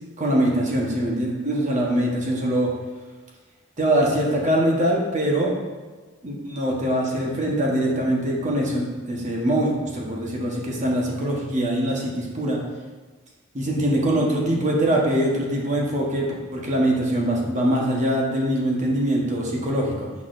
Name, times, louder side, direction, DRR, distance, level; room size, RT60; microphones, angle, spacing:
voice 1, 0.2-2.7 3.8-5.5 6.2-12.6 13.5-20.1, right 1 dB, 35° right, -2 dB, 1.1 m, -23 dB
6.1 x 5.9 x 2.6 m, 1.4 s
head